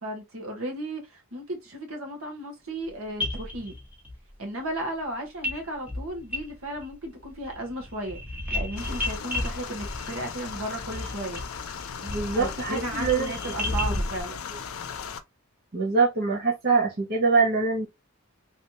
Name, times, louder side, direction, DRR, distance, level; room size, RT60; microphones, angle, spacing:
voice 1, 0.0-3.7 4.4-8.2 8.5-11.4 12.3-14.4, right 1 dB, 80° right, 1.6 m, -35 dB
sound 1, 2.9-3.0 3.2-4.1 5.4-5.6 5.9-6.9 7.2-14.2, left 1 dB, 5° right, 1.0 m, -33 dB
sound 2, 8.8-15.2, left 7 dB, 75° left, 0.5 m, -37 dB
voice 2, 12.0-13.3 13.6-13.7 15.7-17.9, right 4 dB, 50° right, 1.0 m, -24 dB
3.3 x 3.1 x 2.8 m
head